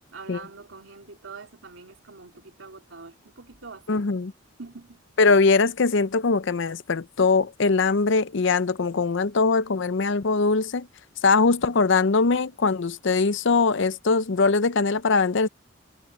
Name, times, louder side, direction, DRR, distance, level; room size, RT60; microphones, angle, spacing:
voice 1, 0.1-4.1 4.6-5.0, right 4 dB, 80° right, 3.0 m, -44 dB
voice 2, 3.9-4.3 5.2-10.9 11.2-15.5, left 4 dB, 65° left, 0.6 m, -21 dB
head